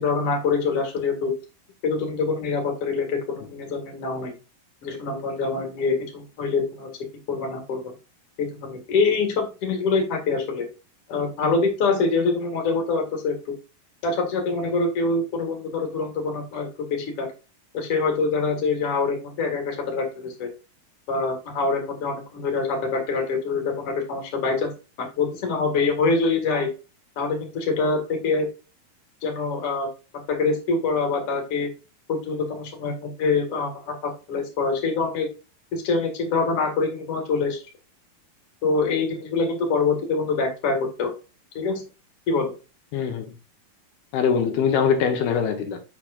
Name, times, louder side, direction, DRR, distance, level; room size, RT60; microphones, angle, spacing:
voice 1, 0.0-1.3 1.8-4.3 4.8-6.9 7.3-7.9 8.4-10.6 11.1-13.4 14.0-17.3 17.7-20.5 21.1-24.7 25.0-26.7 27.2-28.5 29.2-29.9 30.1-31.7 32.1-35.3 35.7-37.6 38.6-41.1 41.5-41.8 42.3-42.5, left 4 dB, 45° left, 2.5 m, -25 dB
voice 2, 42.9-43.3 44.1-45.8, left 7 dB, 75° left, 2.8 m, -22 dB
7.2 x 6.3 x 2.4 m
omnidirectional pair, 4.5 m